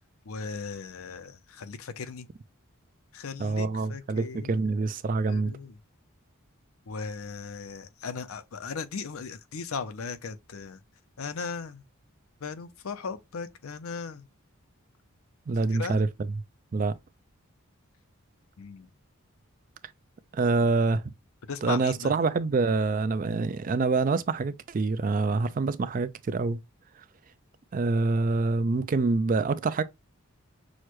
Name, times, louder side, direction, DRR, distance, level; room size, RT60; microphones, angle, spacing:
voice 1, 0.2-2.3 3.1-4.8 5.3-5.8 6.9-10.8 11.2-11.8 12.4-14.3 15.7-16.0 18.6-18.9 21.5-22.1, left 5 dB, 80° left, 0.6 m, -37 dB
voice 2, 3.4-5.5 15.5-16.1 16.7-17.0 20.3-21.0 21.6-26.6 27.7-29.8, right 3 dB, 40° right, 0.3 m, -26 dB
6.3 x 2.2 x 3.0 m
head